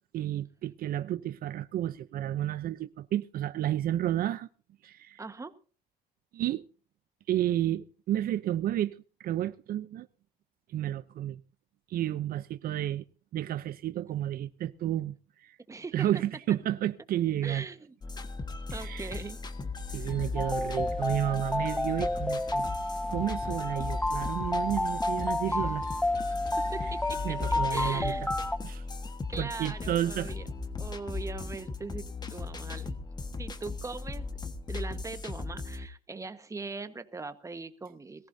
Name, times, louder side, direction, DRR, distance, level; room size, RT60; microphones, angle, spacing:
voice 1, 0.1-4.5 4.8-5.2 6.3-6.6 7.3-10.1 10.7-11.4 11.9-13.0 13.3-15.6 15.9-17.6 18.7-19.2 19.9-22.7 23.1-25.8 27.2-28.1 28.6-28.9 29.4-30.3, right 12 dB, 60° right, 0.6 m, -31 dB
voice 2, 5.2-5.5 15.7-16.1 17.4-17.9 18.7-19.4 19.9-20.2 25.5-25.7 26.3-27.4 27.7-28.3 29.3-30.4 30.8-32.9 33.4-34.3 34.7-38.3, right 4 dB, 20° right, 1.3 m, -41 dB
sound 1, 18.0-35.9, left 3 dB, 25° left, 1.4 m, -37 dB
sound 2, 20.4-28.6, left 2 dB, 5° left, 0.6 m, -31 dB
21.5 x 15.0 x 2.7 m
cardioid pair, 110°, 17 cm